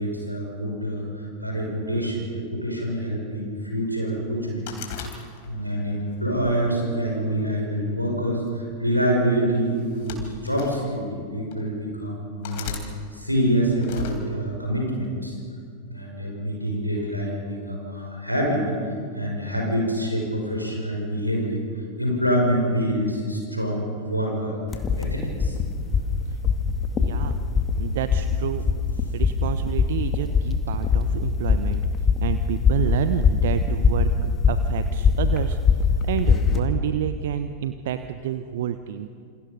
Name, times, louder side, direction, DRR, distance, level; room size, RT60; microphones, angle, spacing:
voice 1, 0.0-4.6 5.1-5.2 5.5-15.4 15.8-21.6 22.0-25.6, equal, 90° right, -1 dB, 5.8 m, -26 dB
sound 1, 4.7-5.7 6.3-7.5 8.5-8.7 9.8-10.8 11.5-11.6 12.4-12.9 13.8-14.2, left 8 dB, 50° left, 3.8 m, -37 dB
sound 2, 24.7-36.6, left 5 dB, 25° left, 2.1 m, -22 dB
voice 2, 27.0-27.4 27.8-28.6 29.1-31.8 32.2-34.1 34.5-39.1, right 10 dB, 55° right, 10 dB, 0.9 m, -29 dB
28.5 x 28.0 x 5.4 m, 2.3 s
figure-of-eight pair, 90°, 0 cm